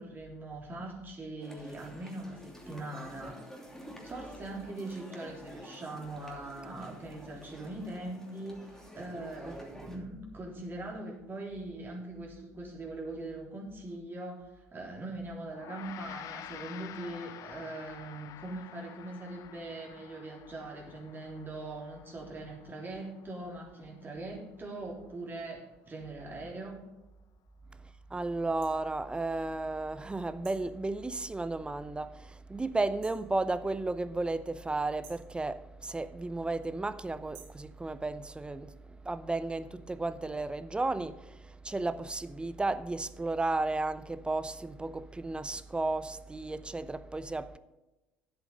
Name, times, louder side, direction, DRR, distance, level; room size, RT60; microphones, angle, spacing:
voice 1, 0.0-3.5 4.0-26.8, right 2 dB, 30° right, 3.5 m, -41 dB
sound 1, 1.4-10.0, equal, 5° left, 2.7 m, -50 dB
voice 2, 9.4-9.8 28.1-38.7 39.0-47.6, right 2 dB, 15° right, 0.6 m, -34 dB
Gong, 15.5-25.1, left 11 dB, 60° left, 0.7 m, -49 dB
sound 2, 28.6-28.8 30.4-30.7 33.0-33.3 35.0-35.3 37.3-37.6, right 8 dB, 85° right, 2.1 m, -53 dB
10.5 x 8.0 x 5.3 m
hypercardioid pair, 70°, 7 cm